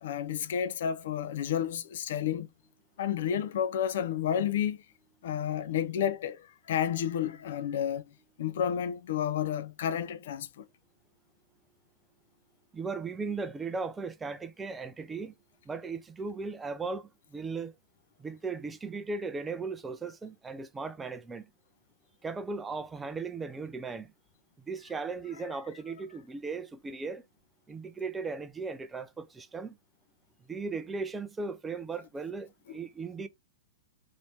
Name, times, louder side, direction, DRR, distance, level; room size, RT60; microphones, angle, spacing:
voice 1, 0.0-2.5 3.0-4.8 5.2-8.0 8.4-10.7 32.7-32.8, left 9 dB, 60° left, 0.4 m, -31 dB
voice 2, 12.7-15.4 15.7-17.7 18.2-21.5 22.2-24.1 24.7-27.2 27.7-29.8 30.5-33.3, right 4 dB, 10° right, 0.4 m, -37 dB
3.0 x 2.7 x 3.3 m
figure-of-eight pair, 105°, 0 cm